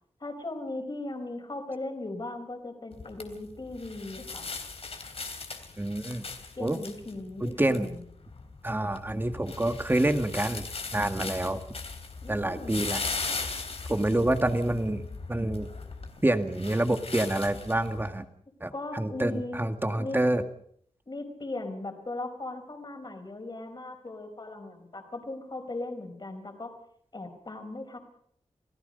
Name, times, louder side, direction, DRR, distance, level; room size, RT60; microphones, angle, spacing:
voice 1, 0.2-4.5 6.6-8.0 12.2-12.9 18.7-19.6 20.0-20.2 21.1-26.7 27.1-28.0, left 2 dB, 35° left, 5 dB, 4.6 m, -38 dB
sound 1, 2.9-18.1, left 4 dB, 55° left, 3.1 m, -39 dB
voice 2, 5.8-6.3 6.6-6.8 7.4-7.9 8.6-11.6 12.3-13.0 13.9-15.0 15.3-15.7 16.2-18.3 18.6-20.4, right 1 dB, 15° right, 8 dB, 1.8 m, -27 dB
28.5 x 18.0 x 5.4 m, 0.66 s
wide cardioid pair, 105°, 12 cm